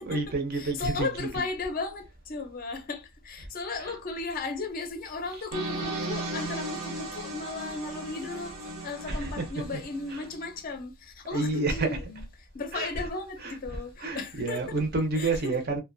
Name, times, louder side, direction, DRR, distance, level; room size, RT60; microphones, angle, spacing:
voice 1, 0.1-1.3 3.8-4.0 5.3-5.5 9.1-9.8 10.1-10.2 11.3-12.0 12.7-13.1 13.4-15.8, right 3 dB, 45° right, 0.6 m, -30 dB
voice 2, 0.6-8.5 8.8-12.2 12.5-14.6 15.2-15.6, left 3 dB, 40° left, 0.5 m, -35 dB
sound 1, 5.5-10.4, right 2 dB, 85° right, 1.0 m, -36 dB
2.5 x 2.1 x 2.5 m
head